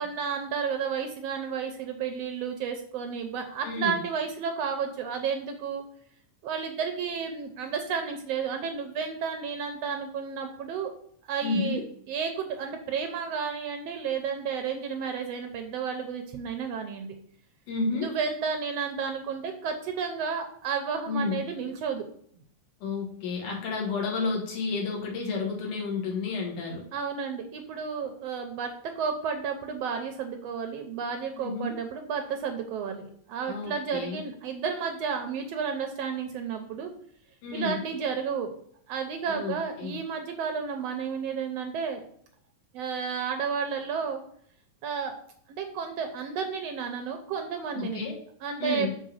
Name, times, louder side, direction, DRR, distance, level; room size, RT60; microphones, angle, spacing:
voice 1, 0.0-5.8 6.4-10.9 11.2-11.8 12.1-17.1 17.9-22.0 26.9-36.9 37.5-38.5 38.9-42.0 42.7-44.2 44.8-45.1 45.5-48.0 48.4-48.9, right 6 dB, 75° right, 5 dB, 1.5 m, -32 dB
voice 2, 3.6-4.0 11.4-11.8 17.7-18.1 21.1-21.4 22.8-26.8 31.4-31.8 33.5-34.2 37.4-37.8 39.3-40.0 47.7-48.2 48.6-49.0, left 4 dB, 75° left, -1 dB, 3.2 m, -31 dB
6.6 x 4.0 x 6.4 m, 0.63 s
omnidirectional pair, 3.6 m